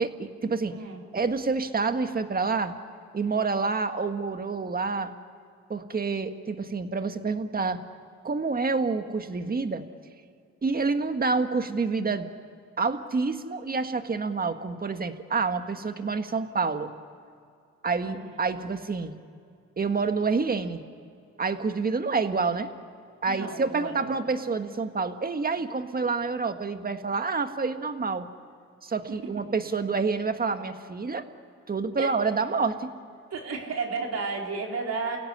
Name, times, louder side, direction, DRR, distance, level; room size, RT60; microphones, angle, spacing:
voice 1, 0.0-0.7 1.1-2.7 3.1-5.1 5.7-7.8 8.2-9.8 10.6-12.3 12.8-16.9 17.8-19.1 19.8-20.8 21.4-22.7 23.2-28.3 28.8-31.3 31.7-32.9, right 4 dB, 30° right, 8 dB, 1.7 m, -28 dB
voice 2, 0.7-1.0 18.0-18.4 23.3-24.2 29.2-29.5 32.0-32.1 33.3-35.2, right 4 dB, 60° right, 0 dB, 4.1 m, -33 dB
29.0 x 17.0 x 10.0 m, 2.4 s
cardioid pair, 90°, 30 cm